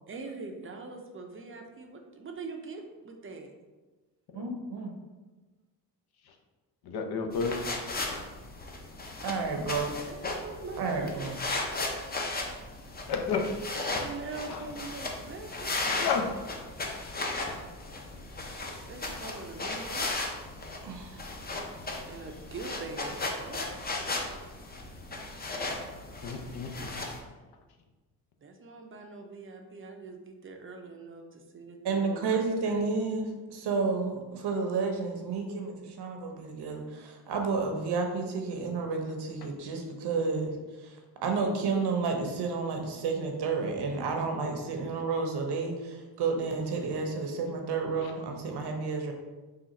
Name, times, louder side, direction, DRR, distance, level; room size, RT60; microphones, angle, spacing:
voice 1, 0.1-3.5 10.1-11.6 14.0-15.7 18.8-20.1 22.0-23.7 28.4-32.9, right 3 dB, 30° right, 3 dB, 0.5 m, -43 dB
voice 2, 4.3-4.9 9.2-9.9 10.8-11.4 20.8-21.2 31.8-40.5 40.8-41.0 41.2-49.1, right 4 dB, 65° right, 3 dB, 0.8 m, -31 dB
voice 3, 6.9-7.6 13.1-13.5 14.5-14.6 15.9-16.3 26.2-26.9 39.4-39.5, left 5 dB, 60° left, 4 dB, 0.7 m, -31 dB
sound 1, 7.3-27.2, left 2 dB, 20° left, 0.6 m, -36 dB
3.7 x 2.4 x 4.1 m, 1.2 s
cardioid pair, 85°, 43 cm